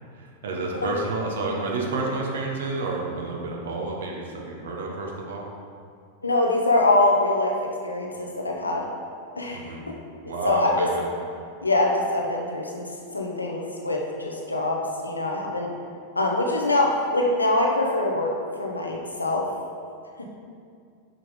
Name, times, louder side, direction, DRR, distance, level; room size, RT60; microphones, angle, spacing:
voice 1, 0.1-5.4 9.5-9.8 10.2-11.0, right 3 dB, 60° right, -1 dB, 1.1 m, -30 dB
voice 2, 6.2-7.5 7.8-8.8 9.4-9.9 10.4-10.7 11.6-15.7 16.2-18.3 18.6-19.5, left 2 dB, 80° left, 0 dB, 0.9 m, -24 dB
5.9 x 5.1 x 4.2 m, 2.3 s
figure-of-eight pair, 90°, 0 cm